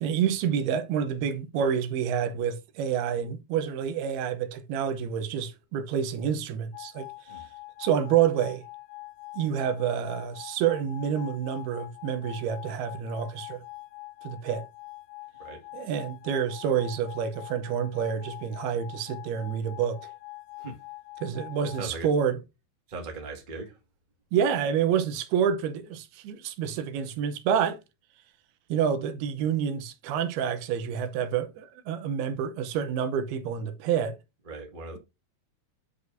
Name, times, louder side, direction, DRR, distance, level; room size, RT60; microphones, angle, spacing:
voice 1, 0.0-7.1 7.8-8.6 9.3-13.6 14.2-14.6 15.7-20.0 21.2-22.4 24.3-27.8 28.7-34.2, right 8 dB, 85° right, 2.8 m, -28 dB
sound 1, 6.7-21.9, left 20 dB, 85° left, 2.6 m, -44 dB
voice 2, 21.6-22.1 22.9-23.8 34.4-35.0, right 3 dB, 40° right, 0.7 m, -39 dB
10.5 x 4.8 x 2.6 m
omnidirectional pair, 4.4 m